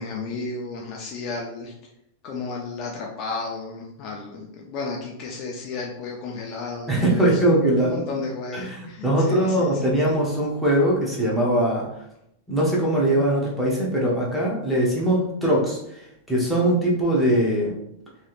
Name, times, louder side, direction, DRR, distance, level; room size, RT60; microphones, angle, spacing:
voice 1, 0.0-1.7 2.2-7.6 7.9-10.2, left 3 dB, 35° left, -1 dB, 0.4 m, -33 dB
voice 2, 6.9-8.0 8.5-11.9 12.5-17.7, right 1 dB, ahead, -5 dB, 0.8 m, -21 dB
3.2 x 2.8 x 2.4 m, 0.79 s
supercardioid pair, 160°, 0 cm